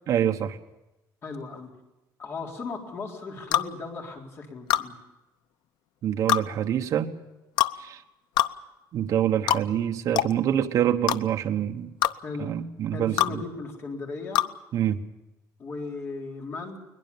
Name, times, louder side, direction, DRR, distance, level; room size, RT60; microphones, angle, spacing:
voice 1, 0.1-0.6 6.0-7.1 7.8-8.0 8.9-11.9 12.4-13.4 14.7-15.0, right 10 dB, 45° right, 5 dB, 1.2 m, -26 dB
voice 2, 1.2-1.7 2.2-4.9 12.2-12.5 12.9-14.4 15.6-16.8, left 3 dB, 30° left, 1 dB, 4.1 m, -36 dB
sound 1, 3.5-3.7 4.7-4.9 6.3-6.4 7.6-7.8 8.4-8.5 9.5-9.6 10.1-10.3 11.1-11.2 12.0-12.1 13.2-13.3 14.3-14.5, left 12 dB, 70° left, 0.8 m, -23 dB
22.0 x 20.5 x 7.0 m, 1.0 s
cardioid pair, 180°, 8 cm